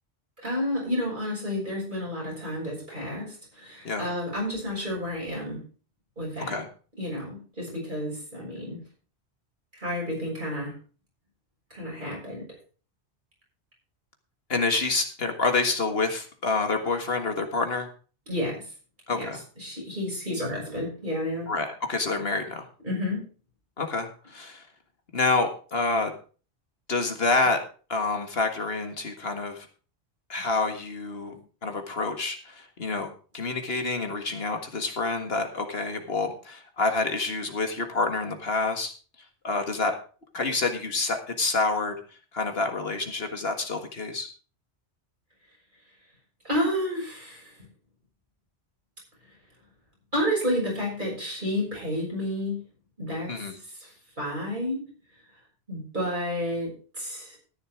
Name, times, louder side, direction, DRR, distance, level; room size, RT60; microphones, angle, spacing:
voice 1, 0.4-5.6 6.2-6.6 7.0-8.8 9.7-10.7 11.7-12.5 18.3-18.6 19.1-21.5 22.8-23.2 46.4-47.6 50.1-52.6 53.0-53.4 54.2-54.9 55.7-57.4, left 1 dB, 50° right, -3 dB, 6.7 m, -30 dB
voice 2, 14.5-17.9 19.1-19.4 21.5-22.7 23.8-24.6 25.1-26.1 26.9-27.6 27.9-29.7 30.3-31.3 31.6-38.9 39.4-40.0 40.3-42.0 42.3-44.3 53.3-53.6, left 3 dB, 65° left, 5 dB, 1.9 m, -28 dB
13.5 x 11.0 x 3.6 m, 0.37 s
omnidirectional pair, 1.1 m